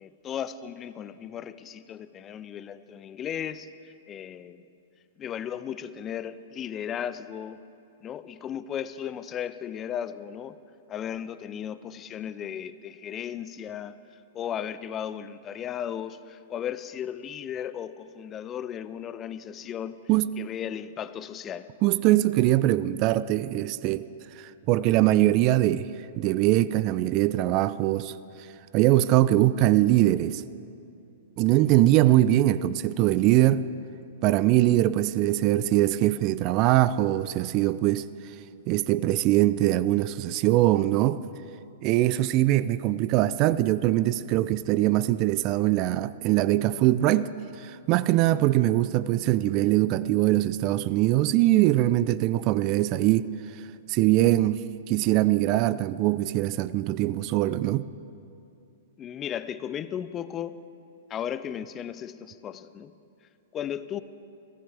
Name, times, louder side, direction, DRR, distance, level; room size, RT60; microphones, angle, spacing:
voice 1, 0.0-4.6 5.2-7.6 8.0-10.6 10.9-14.0 14.3-20.1 20.4-21.7 37.6-37.7 59.0-60.6 61.1-62.9 63.5-64.0, left 9 dB, 25° left, 0.4 m, -35 dB
voice 2, 21.8-24.1 24.4-25.9 26.2-28.2 28.7-30.4 31.4-33.7 34.2-38.1 38.7-41.2 41.8-47.3 47.6-53.3 53.9-57.9, right 15 dB, 40° right, 0.4 m, -22 dB
17.0 x 15.5 x 3.4 m
hypercardioid pair, 120°, 0 cm